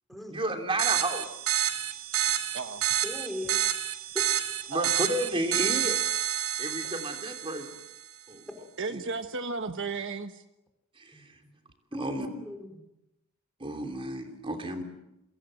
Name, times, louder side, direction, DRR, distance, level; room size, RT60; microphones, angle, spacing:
voice 1, 0.3-1.3 4.7-6.0 6.6-7.7 8.3-8.4 8.9-9.0 11.0-11.4 11.9-12.3 13.6-14.8, right 1 dB, 25° right, 5 dB, 3.1 m, -32 dB
sound 1, 0.8-7.9, right 10 dB, 90° right, 2.3 m, -29 dB
voice 2, 3.0-3.6 4.1-4.2 11.1-11.2 11.9-12.8, left 1 dB, ahead, 4 dB, 4.9 m, -38 dB
voice 3, 8.8-10.3, right 4 dB, 60° right, 8 dB, 1.3 m, -34 dB
28.5 x 24.0 x 7.8 m, 0.89 s
head